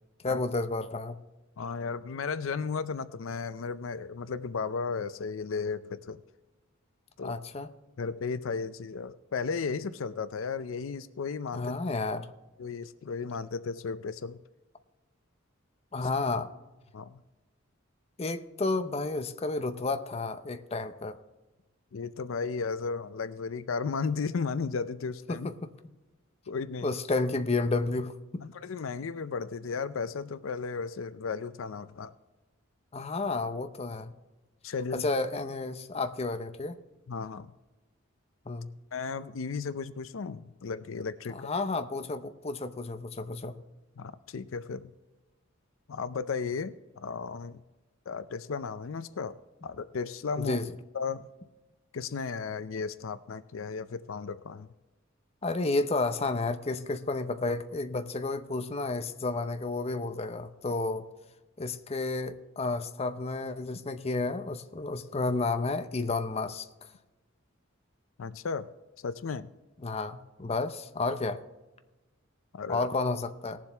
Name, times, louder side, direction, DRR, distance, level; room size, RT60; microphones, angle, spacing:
voice 1, 0.2-1.2 7.2-7.7 11.5-12.3 15.9-16.5 18.2-21.2 25.3-25.5 26.8-28.4 32.9-34.1 34.9-36.8 38.5-38.7 41.3-43.6 50.4-50.6 55.4-61.1 61.6-66.7 69.8-71.4 72.7-73.6, left 3 dB, 30° left, 9 dB, 0.6 m, -31 dB
voice 2, 1.6-6.2 7.2-7.4 8.0-11.7 12.6-14.4 16.0-16.1 16.9-17.2 21.9-25.5 26.5-26.9 28.4-32.1 34.6-35.1 37.1-37.5 38.9-41.5 44.0-44.9 45.9-47.6 48.1-49.4 49.6-50.6 50.9-51.3 51.9-54.7 68.2-68.7 69.0-69.5 72.5-72.9, left 5 dB, 70° left, 13 dB, 0.5 m, -34 dB
19.5 x 7.5 x 3.4 m, 1.1 s
head